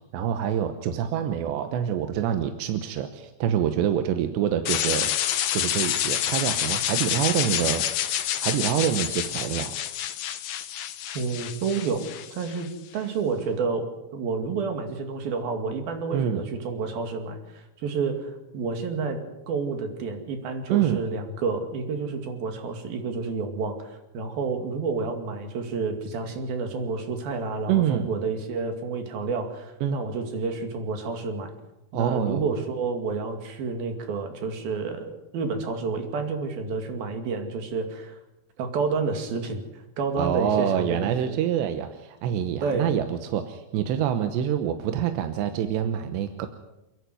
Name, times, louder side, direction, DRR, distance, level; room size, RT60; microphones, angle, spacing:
voice 1, 0.1-5.1 5.5-7.9 8.4-9.8 16.1-16.4 20.7-21.0 27.7-28.1 29.8-30.0 31.9-32.5 40.2-46.5, right 10 dB, 85° right, 8 dB, 3.3 m, -26 dB
sound 1, 4.7-12.7, left 11 dB, 70° left, 2.3 m, -28 dB
voice 2, 11.2-31.5 31.9-38.2 38.6-41.4 42.6-42.9, right 4 dB, 60° right, 6 dB, 4.0 m, -30 dB
29.0 x 11.0 x 9.4 m, 0.97 s
omnidirectional pair, 4.9 m